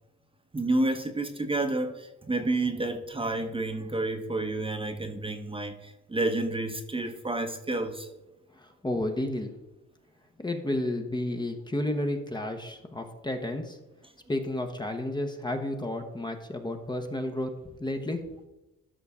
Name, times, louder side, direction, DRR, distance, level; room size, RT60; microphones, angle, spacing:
voice 1, 0.5-8.1, right 2 dB, 15° right, 6 dB, 1.0 m, -30 dB
voice 2, 8.5-9.6 10.4-13.8 14.3-18.2, left 1 dB, 15° left, 5 dB, 1.0 m, -32 dB
12.5 x 5.6 x 3.7 m, 1.0 s
cardioid pair, 90°, 30 cm